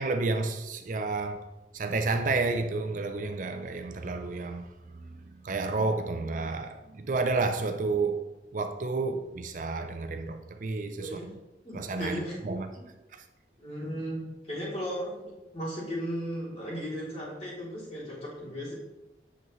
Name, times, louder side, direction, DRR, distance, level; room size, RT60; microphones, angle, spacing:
voice 1, 0.0-1.5 1.7-11.3 11.7-12.7 13.1-13.2, right 3 dB, 45° right, 0.5 m, -31 dB
voice 2, 11.0-11.3 11.6-12.4 12.7-12.8 13.6-18.7, equal, 35° left, 2.9 m, -36 dB
8.0 x 7.0 x 3.1 m
head